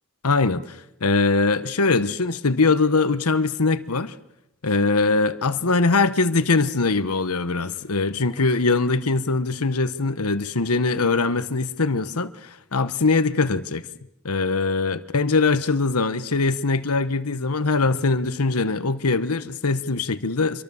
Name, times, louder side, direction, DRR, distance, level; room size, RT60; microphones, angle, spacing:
voice 1, 0.2-4.1 4.6-13.8 14.2-20.6, left 3 dB, 80° left, 1.2 m, -22 dB
26.5 x 23.5 x 7.2 m
head